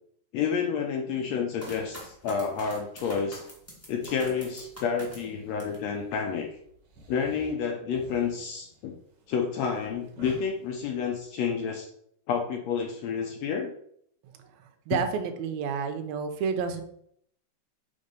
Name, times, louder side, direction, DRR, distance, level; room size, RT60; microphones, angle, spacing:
voice 1, 0.3-3.4 3.9-6.5 7.1-8.9 9.3-11.9 12.3-13.7 14.9-15.0, left 6 dB, 80° left, 3 dB, 1.5 m, -29 dB
sound 1, 1.6-5.9 6.3-7.0, equal, 15° left, 0.5 m, -45 dB
sound 2, 5.1-6.4 6.8-11.2, right 3 dB, 65° right, 1.0 m, -50 dB
voice 2, 14.2-16.8, right 6 dB, 85° right, 6 dB, 1.6 m, -31 dB
5.4 x 4.0 x 5.1 m, 0.67 s
omnidirectional pair, 3.8 m